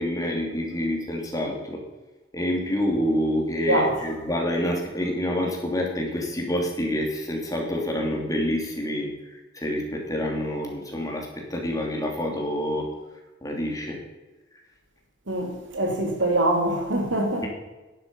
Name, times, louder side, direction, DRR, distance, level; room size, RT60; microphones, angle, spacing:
voice 1, 0.0-1.8 2.3-12.9 13.4-14.0, equal, 20° left, 2.9 m, -27 dB
voice 2, 15.3-17.5, right 1 dB, 90° right, 2.9 m, -24 dB
11.0 x 11.0 x 5.5 m
head